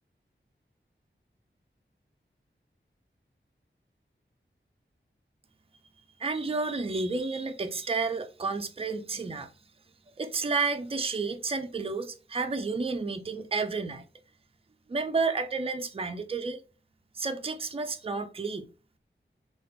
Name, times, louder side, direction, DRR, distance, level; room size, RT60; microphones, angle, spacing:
voice 1, 6.2-9.5 10.2-14.0 14.9-16.6 17.1-18.7, right 4 dB, 30° right, 0.4 m, -31 dB
3.2 x 2.4 x 3.2 m
wide cardioid pair, 50°, 20 cm